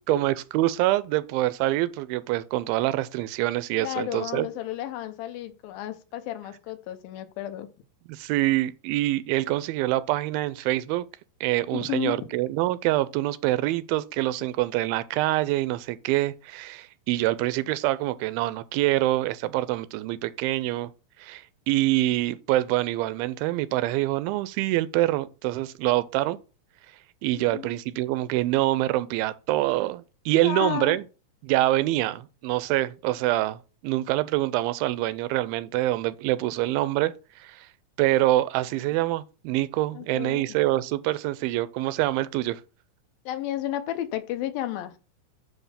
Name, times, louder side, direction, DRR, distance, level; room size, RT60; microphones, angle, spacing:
voice 1, 0.1-4.5 8.1-11.1 11.4-20.9 21.2-26.4 27.2-31.0 31.4-37.1 37.4-37.7 38.0-42.6, right 16 dB, 85° right, 2.4 m, -25 dB
voice 2, 3.8-7.7 11.7-12.4 27.5-27.7 30.4-31.0 39.9-40.6 43.3-45.0, left 13 dB, 80° left, 2.7 m, -32 dB
9.4 x 3.5 x 5.7 m
omnidirectional pair, 4.2 m